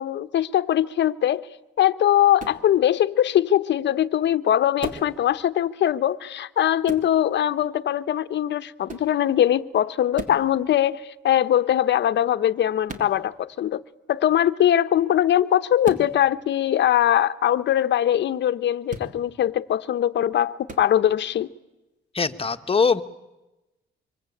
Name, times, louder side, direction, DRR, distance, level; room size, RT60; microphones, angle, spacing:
voice 1, 0.0-1.5 1.8-13.8 14.1-21.5, left 11 dB, 65° left, 1.0 m, -21 dB
sound 1, 2.4-2.6 4.8-5.1 6.8-7.1 8.9-9.1 10.1-10.4 12.9-13.1 15.8-16.1 18.8-19.1 20.7-20.9, right 3 dB, 40° right, 3.5 m, -35 dB
voice 2, 22.1-23.0, left 5 dB, 30° left, 1.4 m, -21 dB
25.0 x 24.5 x 8.6 m
cardioid pair, 90°, 20 cm